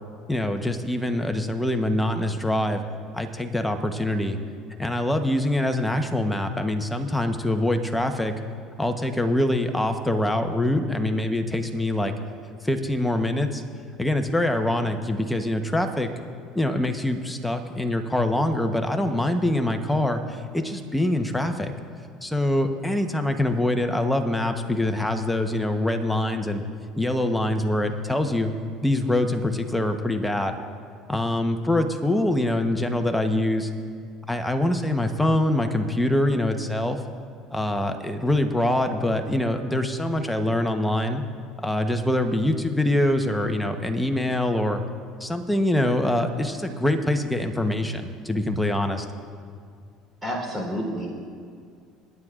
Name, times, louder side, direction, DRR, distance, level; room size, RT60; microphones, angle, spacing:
voice 1, 0.3-2.8 3.1-4.4 4.8-8.3 8.8-12.1 12.6-13.6 14.0-16.1 16.5-20.2 20.5-21.7 22.2-26.6 27.0-28.5 28.8-30.5 31.1-33.7 34.3-37.0 37.5-41.2 41.6-44.8 45.2-49.0, left 1 dB, 5° left, 5 dB, 1.0 m, -24 dB
voice 2, 50.2-51.1, equal, 10° right, -1 dB, 3.7 m, -29 dB
27.0 x 9.5 x 2.5 m, 2.2 s
supercardioid pair, 95°, 0 cm